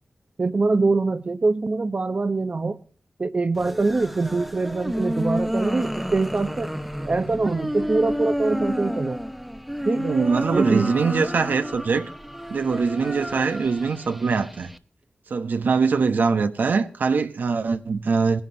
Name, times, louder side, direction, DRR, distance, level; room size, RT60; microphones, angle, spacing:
voice 1, 0.4-2.8 3.2-6.7 7.0-9.2 9.8-10.0 10.5-10.9, right 3 dB, 45° right, 0.9 m, -23 dB
sound 1, 3.5-14.8, equal, 5° right, 1.0 m, -30 dB
voice 2, 9.9-12.1 12.5-14.7 15.3-18.4, right 5 dB, 85° right, 1.0 m, -22 dB
20.0 x 11.5 x 2.8 m
wide cardioid pair, 75°, 3 cm